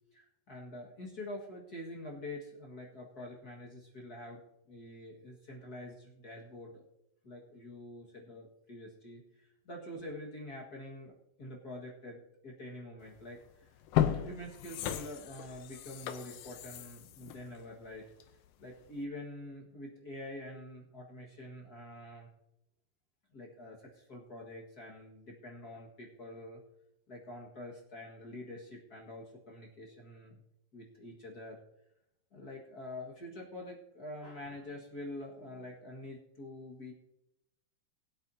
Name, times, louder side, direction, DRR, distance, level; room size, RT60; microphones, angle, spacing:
voice 1, 0.1-4.4 4.7-6.8 7.2-13.7 14.2-18.1 18.6-22.3 23.3-26.6 27.1-30.4 30.7-31.6 32.3-36.9, left 1 dB, 40° left, -2 dB, 1.5 m, -46 dB
sound 1, 13.2-13.3 13.8-18.5 18.9-19.0, left 11 dB, 75° left, 2.2 m, -35 dB
20.5 x 8.8 x 2.8 m, 0.85 s
omnidirectional pair, 4.0 m